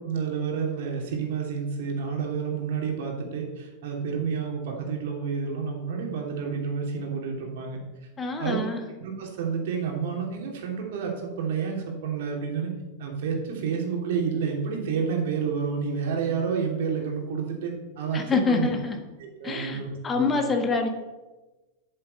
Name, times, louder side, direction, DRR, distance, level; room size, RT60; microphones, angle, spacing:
voice 1, 0.0-7.8 8.4-8.6 9.0-12.7 13.0-18.7 19.2-20.3, right 6 dB, 55° right, 1 dB, 2.9 m, -29 dB
voice 2, 8.2-8.8 18.1-19.0 19.4-20.9, left 4 dB, 20° left, 4 dB, 1.7 m, -26 dB
8.6 x 7.6 x 8.1 m, 1.2 s
figure-of-eight pair, 90°, 0 cm